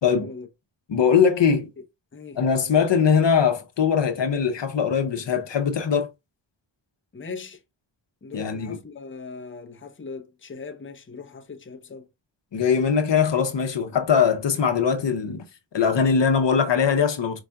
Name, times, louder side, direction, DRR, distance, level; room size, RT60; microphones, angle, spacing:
voice 1, 0.1-0.5 1.8-1.9 2.1-2.4 7.1-7.6 8.2-12.1, left 4 dB, 25° left, 0.7 m, -39 dB
voice 2, 0.9-1.7 2.4-6.1 8.3-8.8 12.5-15.4 15.7-17.4, left 6 dB, 65° left, 0.8 m, -21 dB
4.8 x 4.0 x 2.3 m
wide cardioid pair, 95°, 47 cm